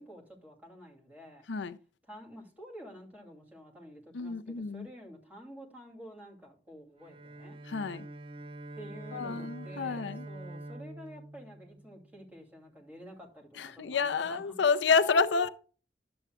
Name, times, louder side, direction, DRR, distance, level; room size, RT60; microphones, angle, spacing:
voice 1, 0.0-1.5 2.1-7.6 8.8-14.4 14.7-15.5, equal, 10° right, 2.6 m, -49 dB
voice 2, 4.1-4.9 7.7-8.1 9.1-10.3 13.6-15.5, left 5 dB, 75° left, 0.5 m, -29 dB
Bowed string instrument, 7.0-12.4, right 1 dB, 30° right, 0.5 m, -46 dB
11.0 x 7.9 x 2.3 m
head